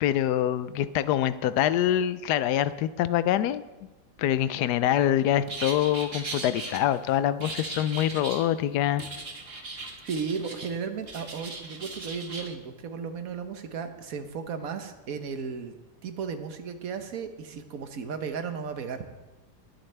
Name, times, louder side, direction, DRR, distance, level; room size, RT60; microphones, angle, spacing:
voice 1, 0.0-3.6 4.2-9.0, left 11 dB, 70° left, 14 dB, 1.1 m, -25 dB
sound 1, 5.5-6.8 7.4-8.5 9.0-10.7 11.0-12.5, right 3 dB, 35° right, 1.4 m, -38 dB
voice 2, 10.0-15.7 16.0-19.3, right 6 dB, 55° right, 7 dB, 1.3 m, -35 dB
20.5 x 8.0 x 3.3 m, 1.1 s
omnidirectional pair, 1.9 m